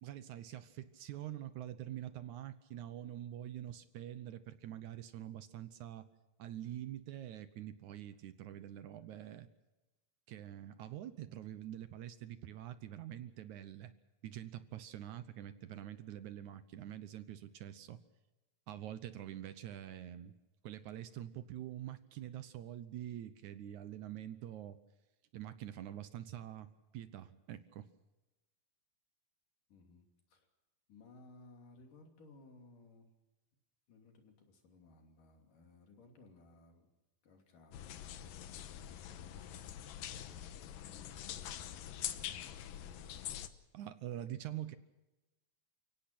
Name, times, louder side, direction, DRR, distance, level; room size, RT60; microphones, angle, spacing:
voice 1, 0.0-6.1 6.4-9.5 10.3-13.9 14.2-18.0 18.7-20.4 20.6-24.8 25.3-27.9 43.7-44.8, right 12 dB, 70° right, 12 dB, 2.1 m, -46 dB
voice 2, 29.7-30.5 30.9-33.1 33.9-36.9 37.2-39.9 40.2-43.3, left 3 dB, 70° left, 3 dB, 4.5 m, -61 dB
sound 1, 37.7-43.5, left 11 dB, 90° left, 2.8 m, -45 dB
29.5 x 17.0 x 6.0 m, 1.1 s
omnidirectional pair, 3.9 m